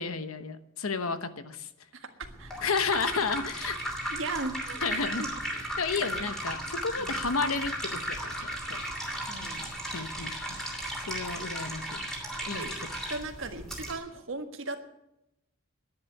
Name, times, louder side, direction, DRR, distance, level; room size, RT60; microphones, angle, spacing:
voice 1, 0.0-1.7 2.6-3.8 4.8-5.3 5.8-8.8 9.9-10.6 11.1-12.1 12.5-12.6, left 4 dB, 85° left, 11 dB, 1.0 m, -32 dB
voice 2, 1.9-2.5 4.1-5.3 5.5-5.6 6.0-6.1 7.0-7.2 9.3-9.7 12.4-12.7 13.1-14.8, right 3 dB, 65° right, 6 dB, 1.6 m, -38 dB
sound 1, 2.2-13.9, right 1 dB, ahead, 2.7 m, -35 dB
10.5 x 10.0 x 9.7 m, 0.88 s
head